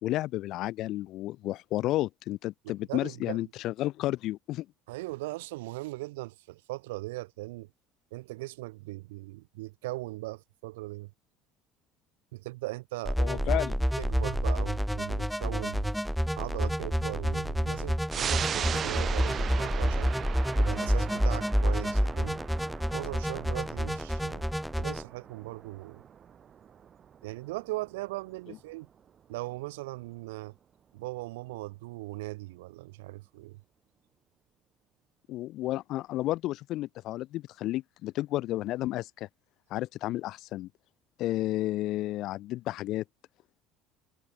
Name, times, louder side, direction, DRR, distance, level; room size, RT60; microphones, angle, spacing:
voice 1, 0.0-4.7 13.2-13.8 35.3-39.3 39.7-40.7 41.2-43.0, left 16 dB, 60° left, 4.8 m, -32 dB
voice 2, 2.6-3.4 4.9-7.7 8.1-11.1 12.3-13.6 14.0-15.9 16.4-20.1 20.6-22.4 22.9-24.5 24.8-26.0 27.2-28.9 29.3-30.6 30.9-33.6, right 20 dB, 85° right, 6.2 m, -39 dB
sound 1, 13.1-25.0, equal, ahead, 2.4 m, -28 dB
sound 2, 18.1-29.1 29.5-29.6, right 8 dB, 40° right, 4.5 m, -39 dB
supercardioid pair, 90°, 0 cm